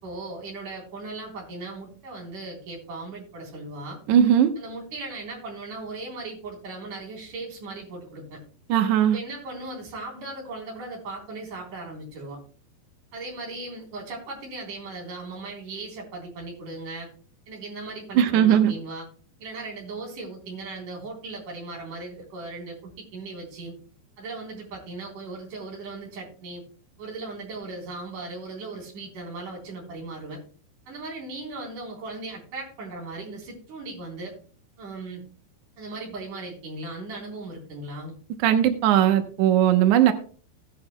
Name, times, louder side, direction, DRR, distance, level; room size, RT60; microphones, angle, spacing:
voice 1, 0.0-4.0 4.6-8.4 9.1-12.4 13.1-17.1 17.5-19.1 19.4-23.7 24.2-26.6 27.0-30.4 30.9-34.4 34.8-35.2 35.8-38.1, right 3 dB, 50° right, -1 dB, 5.1 m, -37 dB
voice 2, 4.1-4.5 8.7-9.2 18.2-18.7 38.4-40.1, right 10 dB, 80° right, 7 dB, 1.7 m, -18 dB
16.5 x 11.0 x 2.2 m, 0.41 s
omnidirectional pair, 4.8 m